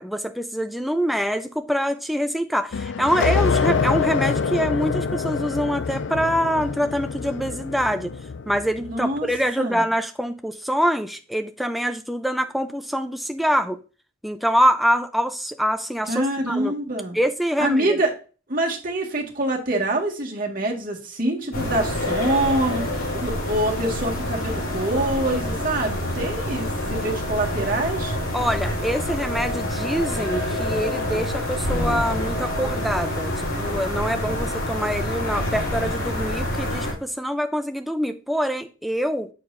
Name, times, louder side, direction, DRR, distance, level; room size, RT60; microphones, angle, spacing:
voice 1, 0.0-8.1 8.5-13.8 14.2-16.7 17.1-18.0 28.3-39.3, equal, ahead, 0.5 m, -25 dB
sound 1, 2.7-9.1, left 5 dB, 65° left, 0.4 m, -25 dB
voice 2, 8.8-9.3 9.6-9.8 16.1-17.2 17.6-18.1 18.5-22.9 23.1-28.1, right 1 dB, 45° right, 1.8 m, -25 dB
sound 2, 21.5-36.9, left 1 dB, 85° left, 3.5 m, -27 dB
7.6 x 6.7 x 2.7 m
head